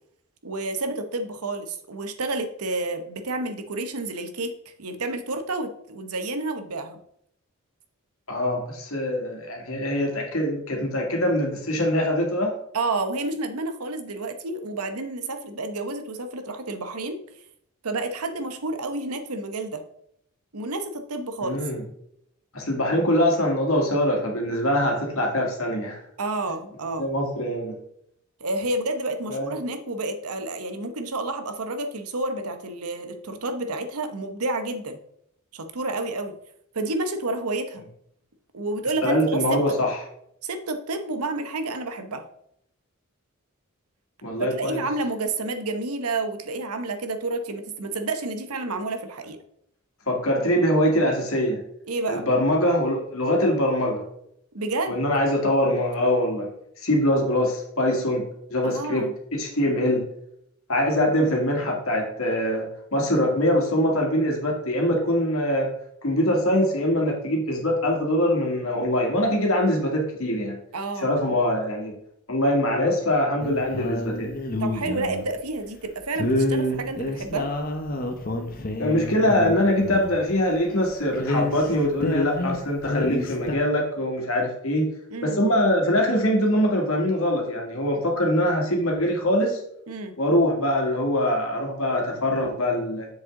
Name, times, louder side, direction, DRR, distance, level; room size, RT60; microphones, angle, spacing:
voice 1, 0.4-7.0 12.7-17.2 17.8-19.8 20.5-21.6 26.2-27.1 28.4-35.0 35.5-36.3 36.7-37.9 38.5-39.6 40.4-42.2 44.4-49.4 51.9-52.3 54.5-55.0 58.6-59.1 70.7-71.4 74.6-77.5 85.1-85.4 89.9-90.1, right 2 dB, 85° right, 7 dB, 1.0 m, -30 dB
voice 2, 8.3-12.5 21.4-21.8 22.5-26.0 27.0-27.8 29.3-29.5 39.0-40.0 44.2-44.8 50.1-51.6 52.1-54.0 54.9-56.5 56.8-60.0 60.7-65.7 66.0-70.6 71.0-71.9 72.3-74.3 78.8-84.9 85.2-89.6 90.2-93.1, left 1 dB, 70° left, 0 dB, 2.2 m, -23 dB
sound 1, 73.4-75.3 76.2-80.2 80.5-80.6 80.9-82.6 82.8-83.5, left 1 dB, 40° left, 0.9 m, -28 dB
7.4 x 6.5 x 3.7 m, 0.73 s
head